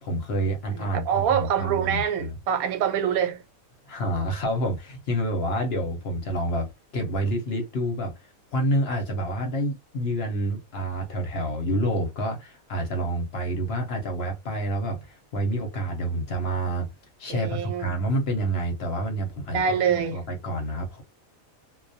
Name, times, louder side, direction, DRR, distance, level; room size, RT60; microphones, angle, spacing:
voice 1, 0.0-2.4 3.9-6.7 6.9-8.2 8.5-16.9 17.2-21.0, right 1 dB, 60° left, 0.8 m, -28 dB
voice 2, 0.8-3.4 17.3-17.9 19.5-20.2, right 8 dB, 85° right, 1.1 m, -25 dB
2.2 x 2.1 x 2.6 m
omnidirectional pair, 1.5 m